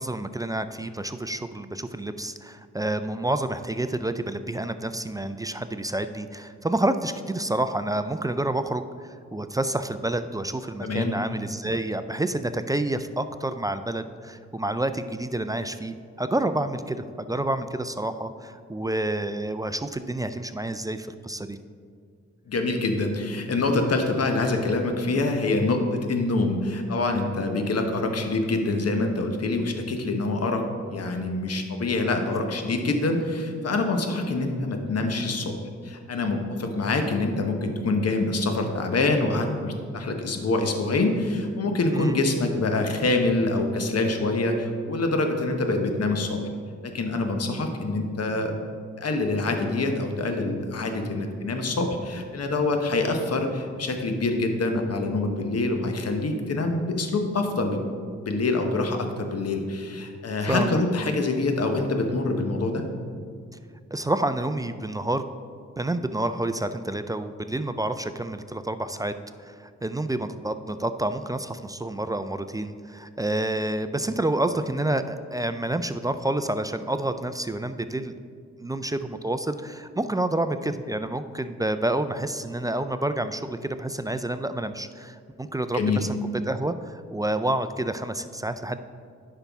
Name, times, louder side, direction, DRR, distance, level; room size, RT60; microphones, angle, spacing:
voice 1, 0.0-21.6 41.9-42.2 60.4-60.8 63.9-65.2 65.8-78.2 78.6-86.2 86.5-88.8, right 1 dB, 15° right, 10 dB, 0.3 m, -29 dB
voice 2, 10.8-11.2 22.5-35.5 35.8-46.4 46.8-48.5 49.0-57.8 58.3-62.8 85.7-86.0, left 2 dB, 55° left, 5 dB, 1.1 m, -25 dB
10.0 x 5.6 x 3.5 m, 2.1 s
cardioid pair, 70°, 29 cm